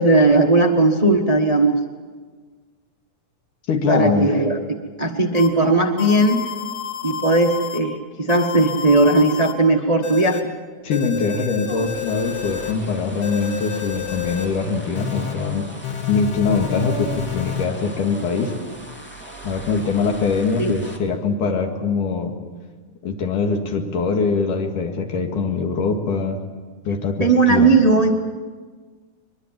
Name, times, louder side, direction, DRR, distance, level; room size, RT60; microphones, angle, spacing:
voice 1, 0.0-1.8 3.9-4.6 5.0-6.4 7.0-10.4 20.6-20.7 27.2-28.1, right 2 dB, 80° right, 3 dB, 0.3 m, -17 dB
voice 2, 3.7-4.3 10.8-15.7 16.1-18.5 19.4-22.4 23.0-26.4 26.9-27.7, left 4 dB, 85° left, 3 dB, 3.5 m, -23 dB
sound 1, 5.3-5.5 6.0-7.8 8.3-9.5 10.0-10.4 10.9-12.7 13.2-14.5 14.9-15.3 15.8-17.6, left 9 dB, 65° left, 3.0 m, -29 dB
Dog, 5.6-6.7 7.1-7.8 8.8-9.6 11.5-12.2 16.4-17.8, right 6 dB, 55° right, 1.0 m, -37 dB
sound 2, 11.6-21.0, right 1 dB, 5° left, 2.1 m, -40 dB
23.0 x 22.5 x 7.6 m, 1.5 s
omnidirectional pair, 3.6 m